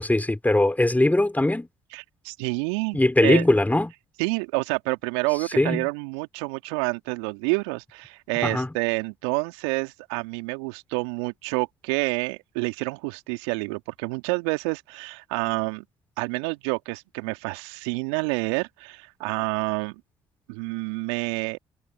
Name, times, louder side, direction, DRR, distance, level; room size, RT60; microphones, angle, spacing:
voice 1, 0.0-1.7 2.9-3.9 5.6-5.9 8.4-8.7, left 1 dB, 10° left, 4.7 m, -20 dB
voice 2, 1.9-3.5 4.2-15.8 16.2-20.0 20.5-21.6, right 31 dB, 75° right, 2.4 m, -28 dB
figure-of-eight pair, 45°, 14 cm